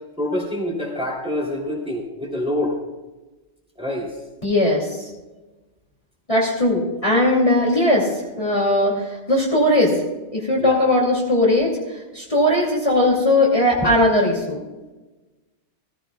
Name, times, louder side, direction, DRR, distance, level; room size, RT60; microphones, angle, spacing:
voice 1, 0.2-2.7 3.8-4.1 10.6-10.8, left 1 dB, 5° right, -3 dB, 3.1 m, -26 dB
voice 2, 4.4-5.1 6.3-10.0 10.3-14.6, left 1 dB, 25° left, -4 dB, 2.7 m, -19 dB
16.5 x 15.5 x 2.3 m, 1.1 s
omnidirectional pair, 1.2 m